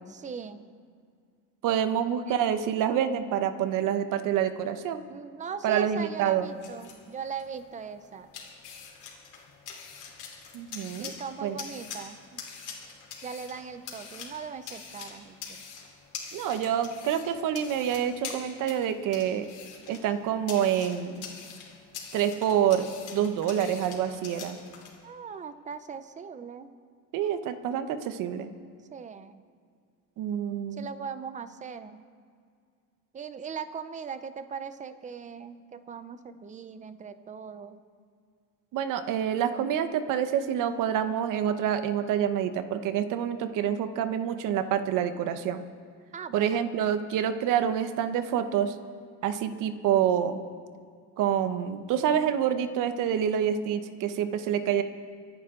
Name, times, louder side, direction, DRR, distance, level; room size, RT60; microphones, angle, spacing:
voice 1, 0.1-0.7 2.0-2.4 5.1-8.3 11.0-12.4 13.2-15.6 25.0-26.7 28.9-29.4 30.8-32.0 33.1-37.8 46.1-46.6, right 6 dB, 20° right, 12 dB, 0.5 m, -39 dB
voice 2, 1.6-5.0 5.6-6.5 10.5-11.1 11.4-11.6 16.3-19.5 19.9-21.3 22.1-22.9 23.1-24.6 27.1-28.5 30.2-30.9 38.7-45.6 46.3-48.8 49.2-50.4 51.2-54.8, right 9 dB, 60° right, 10 dB, 1.0 m, -27 dB
sound 1, 6.4-24.9, left 6 dB, 60° left, 3.4 m, -45 dB
25.0 x 11.0 x 3.8 m, 2.2 s
cardioid pair, 170°, 35 cm